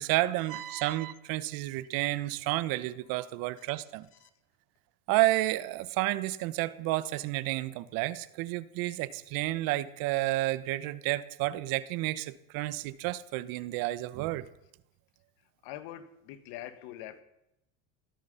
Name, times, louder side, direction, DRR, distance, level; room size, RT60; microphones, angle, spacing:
voice 1, 0.0-4.1 5.1-14.5, right 17 dB, 65° right, 1.1 m, -31 dB
voice 2, 15.6-17.2, left 12 dB, 70° left, 2.0 m, -43 dB
16.5 x 13.5 x 5.7 m
supercardioid pair, 110°, 37 cm